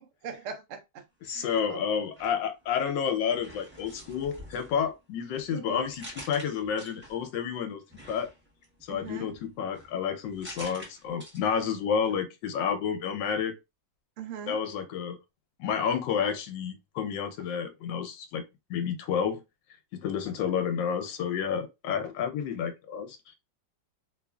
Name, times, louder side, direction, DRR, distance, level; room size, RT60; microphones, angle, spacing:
voice 1, 0.0-1.9 5.5-5.9 8.9-9.3 14.2-14.6, right 7 dB, 65° right, 0.7 m, -41 dB
voice 2, 1.2-7.8 8.1-8.3 8.8-13.5 14.5-15.2 15.6-18.4 18.7-19.4 19.9-23.4, left 7 dB, 85° left, 1.3 m, -30 dB
sound 1, 2.0-3.0 3.3-7.4 7.9-11.8 12.0-12.1, equal, 10° right, 0.6 m, -48 dB
3.0 x 2.4 x 2.2 m
omnidirectional pair, 1.9 m